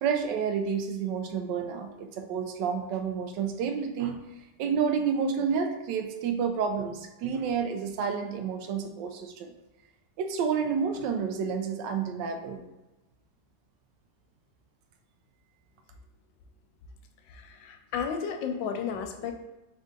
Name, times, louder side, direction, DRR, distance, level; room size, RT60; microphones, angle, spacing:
voice 1, 0.0-4.2 4.6-9.5 10.2-12.6, right 6 dB, 80° right, 5 dB, 1.2 m, -30 dB
voice 2, 17.2-19.3, left 6 dB, 85° left, 5 dB, 1.3 m, -33 dB
3.7 x 2.7 x 3.7 m, 1.0 s
omnidirectional pair, 2.0 m